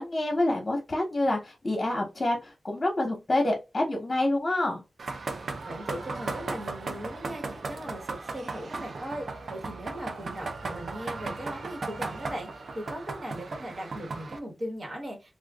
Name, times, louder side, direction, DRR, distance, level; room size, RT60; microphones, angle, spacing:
voice 1, 0.0-4.8, left 1 dB, 40° left, 1.0 m, -27 dB
sound 1, 5.0-14.4, right 3 dB, 75° right, 0.5 m, -36 dB
voice 2, 5.6-15.4, equal, 50° right, 1.3 m, -39 dB
2.4 x 2.3 x 3.4 m
wide cardioid pair, 75°, 0 cm